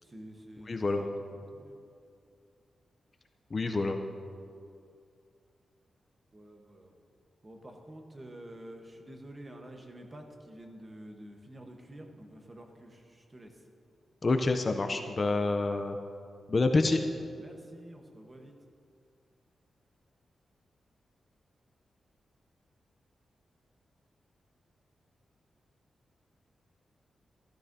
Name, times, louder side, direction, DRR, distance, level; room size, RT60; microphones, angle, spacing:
voice 1, 0.0-1.1 1.5-1.8 6.3-7.0 7.4-13.6 17.4-18.6, right 1 dB, 20° right, 3 dB, 1.0 m, -49 dB
voice 2, 0.7-1.0 3.5-4.0 14.2-16.0 16.5-17.0, left 3 dB, 30° left, 6 dB, 0.4 m, -27 dB
14.0 x 13.0 x 2.6 m, 2.4 s
wide cardioid pair, 160°, 0 cm